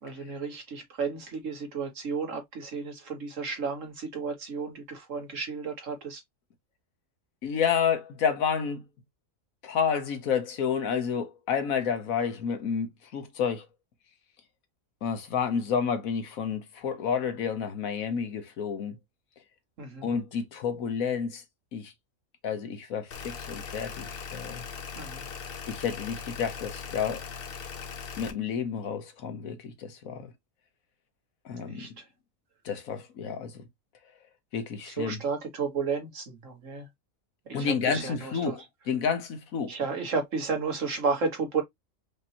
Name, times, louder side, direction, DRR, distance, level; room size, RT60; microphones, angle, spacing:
voice 1, 0.0-6.2 19.8-20.1 25.0-25.2 31.7-31.9 34.9-36.9 37.5-38.6 39.7-41.6, right 5 dB, 65° right, 1.8 m, -32 dB
voice 2, 7.4-8.8 9.6-13.7 15.0-19.0 20.0-21.4 21.7-21.9 22.4-24.6 25.7-27.2 28.2-30.3 31.4-31.9 32.6-33.6 34.5-35.2 37.5-39.8, left 7 dB, 90° left, 1.4 m, -30 dB
sound 1, 23.1-28.3, left 6 dB, 50° left, 0.8 m, -39 dB
5.1 x 3.0 x 2.7 m
omnidirectional pair, 1.4 m